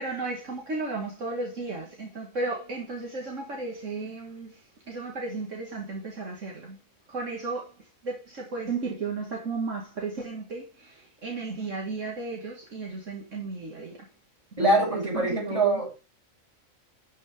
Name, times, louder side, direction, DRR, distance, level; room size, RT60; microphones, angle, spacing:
voice 1, 0.0-6.8 7.1-7.7 8.0-14.1 14.6-15.8, right 3 dB, 65° right, 2.2 m, -34 dB
voice 2, 14.6-16.0, right 2 dB, 25° right, 5.4 m, -24 dB
12.0 x 6.3 x 3.4 m
omnidirectional pair, 1.4 m